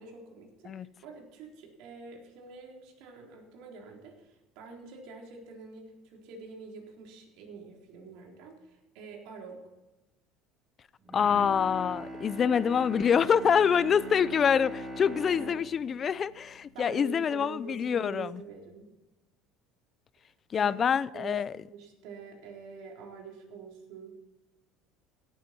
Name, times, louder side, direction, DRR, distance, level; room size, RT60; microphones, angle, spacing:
voice 1, 0.0-9.6 15.3-15.5 16.7-18.9 20.5-20.7 21.1-21.4 21.7-24.1, right 5 dB, 70° right, 3.8 m, -46 dB
Bowed string instrument, 11.0-17.3 17.7-17.8, right 1 dB, 20° right, 2.1 m, -42 dB
voice 2, 11.1-18.4 20.5-21.5, left 7 dB, 30° left, 0.4 m, -26 dB
17.0 x 9.2 x 4.5 m
cardioid pair, 145°, 0 cm